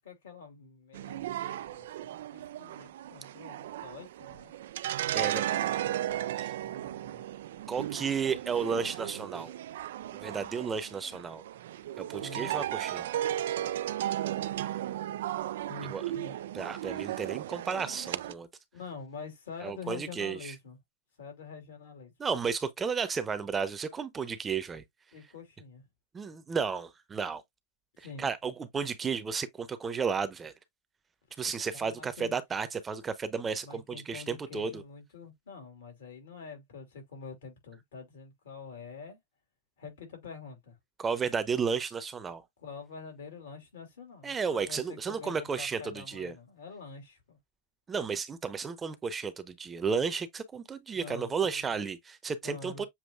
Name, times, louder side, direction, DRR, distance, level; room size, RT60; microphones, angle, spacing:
voice 1, 0.0-4.5 6.5-7.2 12.1-12.5 15.7-16.4 18.7-20.8 21.2-22.1 25.1-25.8 28.0-28.3 31.7-32.3 33.6-39.2 39.8-40.7 42.6-47.4 50.9-51.8 52.4-52.9, left 5 dB, 75° left, 2.8 m, -46 dB
sound 1, 0.9-18.3, right 12 dB, 75° right, 0.3 m, -35 dB
voice 2, 5.1-5.7 6.4-6.5 7.7-9.5 10.1-11.4 12.0-13.1 15.9-16.0 16.5-18.5 19.6-20.5 22.2-24.8 26.1-27.4 28.0-30.5 31.4-34.8 41.0-42.4 44.2-46.3 47.9-52.8, right 5 dB, 25° right, 0.8 m, -33 dB
7.2 x 2.9 x 2.4 m
hypercardioid pair, 95°, 0 cm